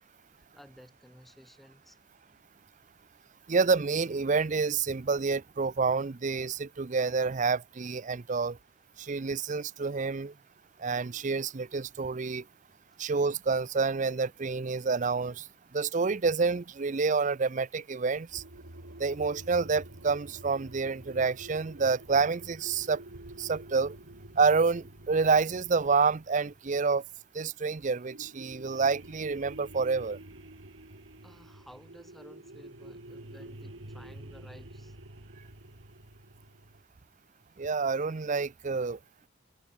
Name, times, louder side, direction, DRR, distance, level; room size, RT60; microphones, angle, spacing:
voice 1, 0.3-2.0 31.2-35.0, equal, ahead, 6.1 m, -54 dB
voice 2, 3.5-8.6 9.0-10.3 10.8-12.4 13.0-15.5 15.7-18.4 19.0-23.0 23.4-23.9 24.4-27.0 27.3-30.2 37.6-39.0, right 4 dB, 40° right, 0.5 m, -28 dB
sound 1, 18.3-27.4 28.1-36.8, right 1 dB, 75° right, 3.1 m, -48 dB
head